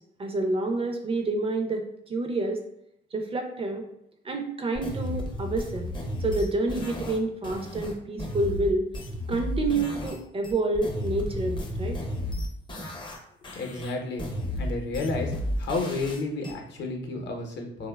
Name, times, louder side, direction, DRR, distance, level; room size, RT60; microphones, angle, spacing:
voice 1, 0.2-2.6 3.1-3.8 4.2-5.9 6.2-8.9 9.3-12.0 12.8-12.9, right 2 dB, 30° right, 4 dB, 0.4 m, -28 dB
sound 1, 4.7-10.2 10.4-13.2 13.4-16.5, left 1 dB, 25° left, 0.5 m, -33 dB
voice 2, 13.5-14.3 14.6-15.3 15.6-17.9, left 3 dB, 60° left, 2 dB, 0.7 m, -31 dB
2.8 x 2.1 x 2.2 m, 0.79 s
cardioid pair, 90°, 20 cm